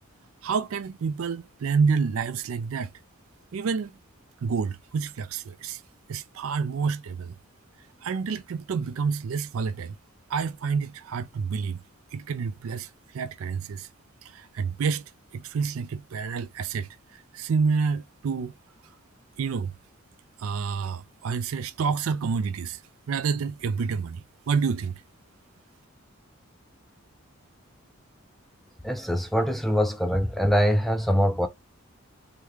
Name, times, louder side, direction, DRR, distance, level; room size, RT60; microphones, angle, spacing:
voice 1, 0.4-2.9 3.5-4.0 4.4-5.8 6.1-7.4 8.0-10.0 10.3-11.8 12.1-13.9 14.2-15.0 15.3-18.5 19.4-19.7 20.4-22.8 23.1-25.0, right 5 dB, 80° right, 0.4 m, -28 dB
voice 2, 28.8-31.5, equal, ahead, 0.3 m, -23 dB
3.5 x 2.1 x 3.1 m
head